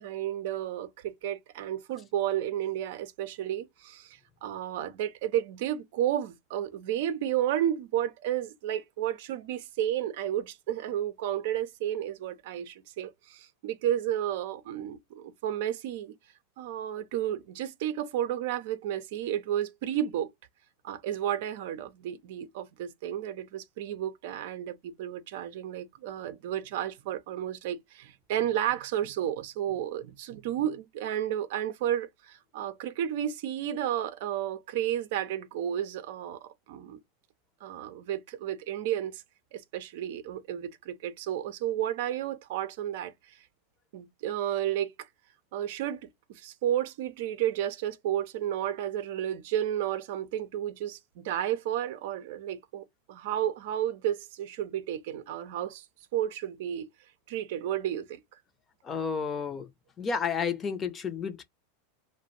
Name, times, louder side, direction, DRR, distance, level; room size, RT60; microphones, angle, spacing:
voice 1, 0.0-16.1 16.6-20.3 20.8-37.0 37.6-39.2 39.5-43.4 43.9-44.9 45.5-46.0 46.3-55.8 56.1-56.9 57.3-58.2, right 11 dB, 65° right, 0.5 m, -32 dB
voice 2, 58.8-59.7 60.0-61.4, left 6 dB, 30° left, 0.7 m, -31 dB
2.4 x 2.2 x 3.9 m
hypercardioid pair, 105°, 0 cm